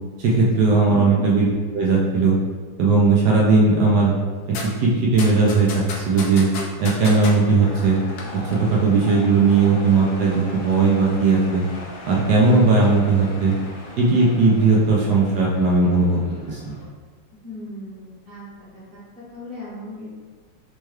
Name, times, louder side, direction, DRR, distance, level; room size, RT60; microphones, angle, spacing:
voice 1, 0.2-1.5 1.7-2.4 2.8-4.1 4.5-6.5 6.8-8.0 8.3-11.6 12.0-13.5 14.0-16.2 16.5-16.7, right 3 dB, 75° right, -4 dB, 1.0 m, -18 dB
voice 2, 0.9-1.2 17.4-18.4 18.7-20.0, left 1 dB, 35° right, -11 dB, 1.0 m, -37 dB
sound 1, 4.5-4.7 5.2-7.3 8.0-8.2 8.5-8.6, left 4 dB, 90° left, 0.8 m, -31 dB
sound 2, 7.4-16.8, left 2 dB, 75° left, 1.3 m, -39 dB
4.6 x 2.2 x 3.0 m, 1.4 s
omnidirectional pair, 2.3 m